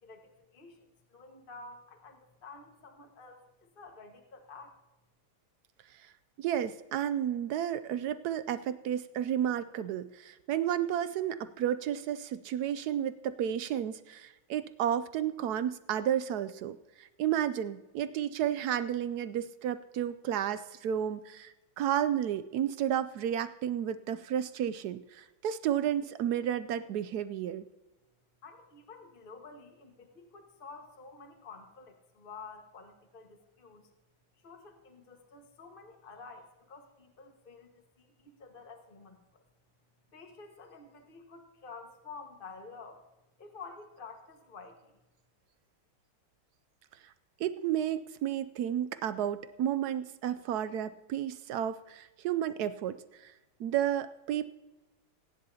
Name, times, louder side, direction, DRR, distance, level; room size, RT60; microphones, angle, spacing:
voice 1, 0.0-4.8 28.4-33.9 34.4-39.4 40.1-43.0 43.4-45.0, left 4 dB, 30° left, 3 dB, 1.5 m, -50 dB
voice 2, 6.4-27.6 47.4-53.3 53.6-54.5, right 10 dB, 80° right, 13 dB, 0.8 m, -32 dB
24.5 x 10.5 x 2.8 m, 1.1 s
omnidirectional pair, 2.2 m